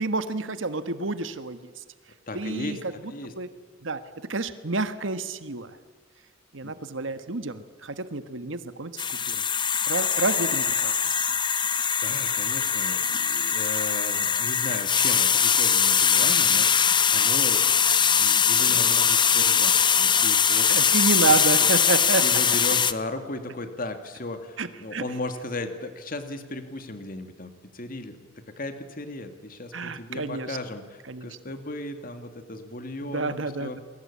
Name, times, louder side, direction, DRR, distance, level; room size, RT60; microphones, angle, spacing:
voice 1, 0.0-1.6 2.3-2.8 3.4-3.5 3.8-4.0 4.3-5.7 6.5-9.4 9.9-11.0 20.7-22.2 24.6-25.0 29.7-30.6 31.1-31.3 33.0-33.8, right 3 dB, 80° right, 11 dB, 1.5 m, -29 dB
voice 2, 2.3-2.8 3.1-3.3 6.6-6.7 12.0-16.7 17.1-20.9 21.6-21.7 22.2-33.8, left 2 dB, 45° left, 8 dB, 2.3 m, -36 dB
sound 1, 9.0-22.9, left 7 dB, 25° left, 0.9 m, -22 dB
28.5 x 21.5 x 8.6 m, 1.5 s
head